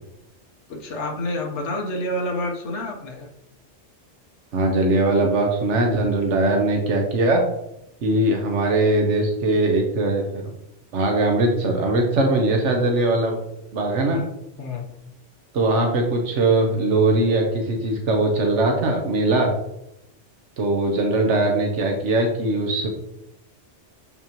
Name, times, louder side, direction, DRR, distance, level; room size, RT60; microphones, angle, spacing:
voice 1, 0.7-3.3 14.0-14.3 14.6-14.8, left 1 dB, 80° left, 0 dB, 1.4 m, -28 dB
voice 2, 4.5-7.4 8.0-10.5 10.9-13.4 13.7-14.2 15.5-19.5 20.6-22.9, right 2 dB, 90° right, 2 dB, 1.2 m, -20 dB
7.0 x 5.8 x 3.0 m, 0.84 s
omnidirectional pair, 1.2 m